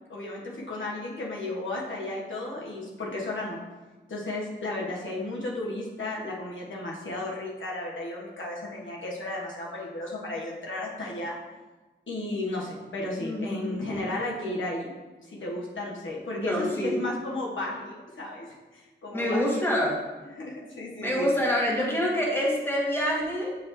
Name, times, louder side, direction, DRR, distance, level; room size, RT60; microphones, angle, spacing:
voice 1, 0.1-3.6 4.1-11.4 12.1-14.9 15.2-18.5 18.7-19.4 20.4-21.3, left 2 dB, 85° left, -3 dB, 1.2 m, -34 dB
voice 2, 13.2-13.9 16.3-17.1 19.1-19.9 21.0-23.6, equal, 10° left, -3 dB, 1.4 m, -26 dB
9.3 x 3.4 x 3.0 m, 1.2 s
wide cardioid pair, 85°, 19 cm